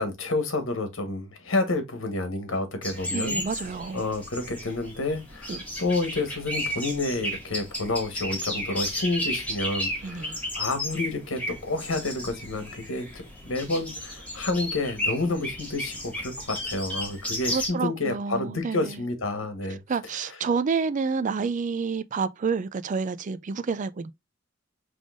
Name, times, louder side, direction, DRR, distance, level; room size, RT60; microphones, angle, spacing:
voice 1, 0.0-3.4 3.9-19.8, left 2 dB, 80° left, 1.4 m, -29 dB
sound 1, 2.8-17.7, left 1 dB, 5° left, 2.1 m, -33 dB
voice 2, 3.1-4.1 5.5-5.7 10.0-10.4 17.5-19.0 19.9-24.1, right 5 dB, 40° right, 0.4 m, -29 dB
5.2 x 3.5 x 2.5 m
head